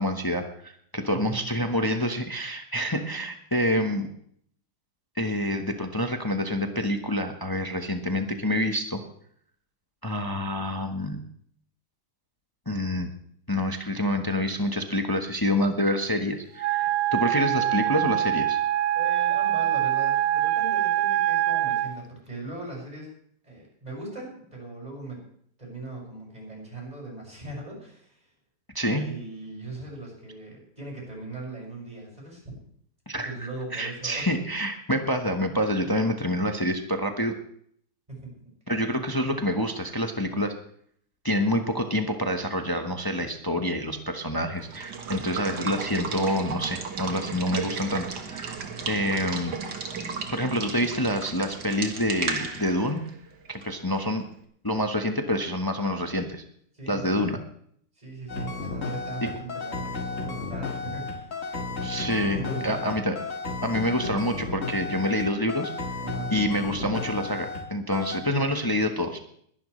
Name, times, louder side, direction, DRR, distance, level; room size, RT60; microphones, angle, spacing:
voice 1, 0.0-4.1 5.2-9.0 10.0-11.2 12.7-13.1 13.5-18.6 28.7-29.1 33.1-33.3 33.7-37.4 38.7-40.5 41.2-48.6 48.9-49.6 50.3-53.0 53.5-54.2 54.6-56.4 56.9-57.4 59.2-59.3 61.8-63.1 63.6-65.7 66.3-69.2, left 1 dB, 20° left, 5 dB, 0.7 m, -27 dB
Wind instrument woodwind instrument, 16.6-22.0, right 13 dB, 90° right, 1.7 m, -24 dB
voice 2, 18.9-23.1 23.4-25.3 25.6-28.3 28.9-32.6 33.2-34.3 38.1-38.4 56.7-57.4 57.9-61.3 62.3-62.9 66.0-66.3, right 2 dB, 15° right, -2 dB, 6.1 m, -39 dB
Water / Water tap faucet / Liquid, 44.6-54.2, right 5 dB, 55° right, 2.0 m, -34 dB
sound 1, 58.3-67.7 67.9-68.2, left 3 dB, 35° left, 2.2 m, -33 dB
21.5 x 11.5 x 3.2 m, 0.64 s
omnidirectional pair, 2.3 m